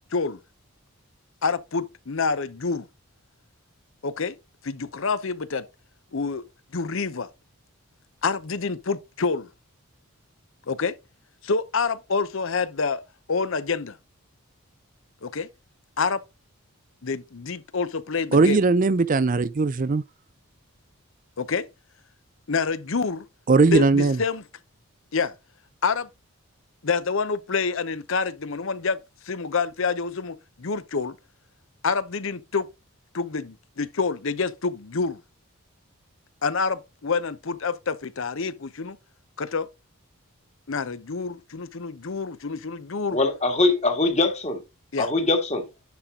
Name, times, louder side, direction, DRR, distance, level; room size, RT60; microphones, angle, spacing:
voice 1, 1.4-2.9 4.0-4.4 4.6-5.7 6.1-6.4 6.7-7.3 8.2-9.5 10.7-10.9 11.4-13.0 13.3-14.0 15.2-15.5 16.0-16.2 17.0-18.6 21.4-21.7 22.5-23.2 23.7-24.4 25.1-25.3 25.8-26.1 26.8-29.0 29.2-31.1 31.8-32.7 33.1-35.2 36.4-39.0 39.4-39.7 40.7-43.2 44.9-45.1, left 4 dB, 60° left, 0.7 m, -27 dB
voice 2, 18.3-20.0 23.5-24.2, right 3 dB, 35° right, 0.4 m, -19 dB
voice 3, 43.1-44.6 45.0-45.6, left 2 dB, 30° left, 1.7 m, -22 dB
10.5 x 4.5 x 3.7 m
head